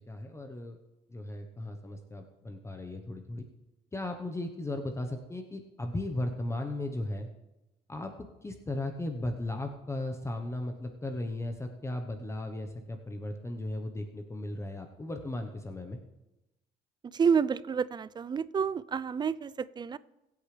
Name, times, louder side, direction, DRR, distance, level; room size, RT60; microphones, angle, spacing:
voice 1, 0.1-0.8 1.1-3.5 3.9-7.3 7.9-16.0, left 1 dB, 15° left, 5 dB, 1.0 m, -36 dB
voice 2, 17.1-20.0, right 6 dB, 25° right, 18 dB, 0.4 m, -29 dB
22.0 x 8.5 x 3.3 m, 0.99 s
cardioid pair, 110°, 17 cm